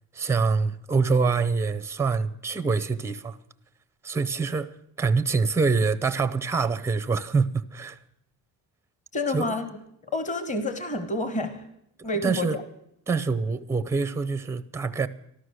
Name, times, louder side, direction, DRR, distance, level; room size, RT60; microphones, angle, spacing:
voice 1, 0.1-3.4 4.0-8.0 9.3-9.5 12.2-12.6 13.1-15.1, right 4 dB, 5° right, 0.5 m, -25 dB
voice 2, 9.1-9.7 10.0-11.7 12.0-12.5, left 2 dB, 20° left, 1.3 m, -28 dB
13.0 x 12.5 x 6.4 m
cardioid pair, 110°, 39 cm